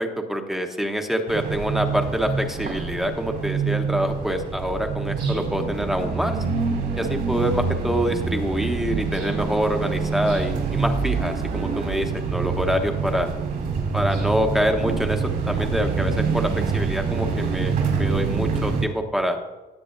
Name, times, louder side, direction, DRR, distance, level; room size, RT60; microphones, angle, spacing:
voice 1, 0.0-6.4 7.0-13.3 13.9-19.4, equal, ahead, 3 dB, 1.0 m, -26 dB
sound 1, 1.3-18.8, right 5 dB, 70° right, 3.6 m, -26 dB
17.5 x 7.5 x 2.6 m, 1.2 s
cardioid pair, 110°, 17 cm